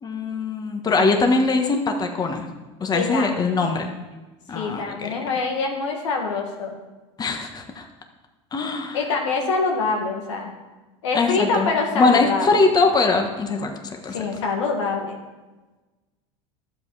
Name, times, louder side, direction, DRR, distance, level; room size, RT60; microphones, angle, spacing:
voice 1, 0.0-2.5 2.8-3.9 4.5-5.1 7.2-7.8 8.5-9.0 11.1-14.1, left 3 dB, 25° left, 4 dB, 1.4 m, -22 dB
voice 2, 2.9-3.7 4.5-6.7 8.9-10.5 11.0-12.5 14.1-15.2, left 4 dB, 90° left, 1 dB, 1.8 m, -25 dB
11.5 x 7.5 x 4.8 m, 1.2 s
supercardioid pair, 100°, 15 cm